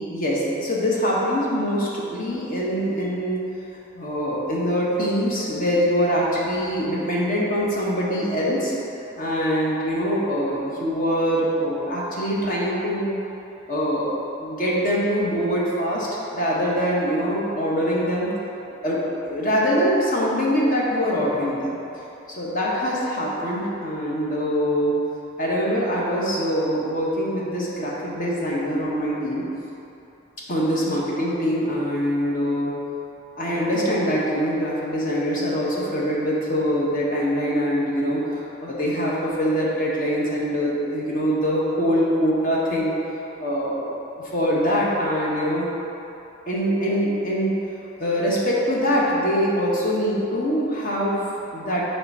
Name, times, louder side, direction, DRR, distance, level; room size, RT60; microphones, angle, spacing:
voice 1, 0.0-3.4 3.9-8.7 9.2-13.2 13.7-16.1 16.3-18.3 18.8-21.8 22.4-24.9 25.4-29.4 30.5-32.7 33.4-38.2 38.6-42.9 43.4-43.9 44.2-45.7 46.5-47.5 48.0-51.2 51.5-51.8, equal, 40° left, -5 dB, 1.2 m, -23 dB
6.8 x 3.5 x 5.5 m, 2.9 s
head